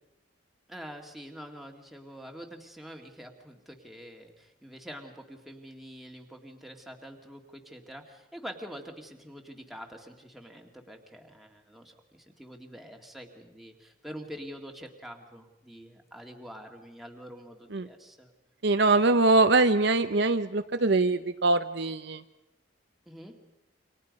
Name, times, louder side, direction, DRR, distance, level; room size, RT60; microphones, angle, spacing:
voice 1, 0.7-18.3 23.1-23.4, equal, ahead, 2 dB, 2.2 m, -45 dB
voice 2, 18.6-22.2, right 3 dB, 55° right, 9 dB, 0.8 m, -23 dB
29.0 x 25.5 x 5.4 m, 0.94 s
head